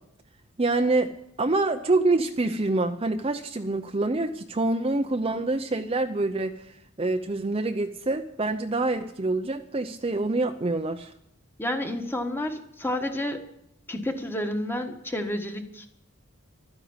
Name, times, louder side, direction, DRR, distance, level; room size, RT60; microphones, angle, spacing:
voice 1, 0.6-1.1 1.4-6.6 7.0-11.1, right 2 dB, 30° right, 6 dB, 0.7 m, -26 dB
voice 2, 11.6-13.4 13.9-15.9, left 1 dB, 10° left, 5 dB, 1.5 m, -30 dB
12.5 x 10.0 x 9.7 m, 0.77 s
head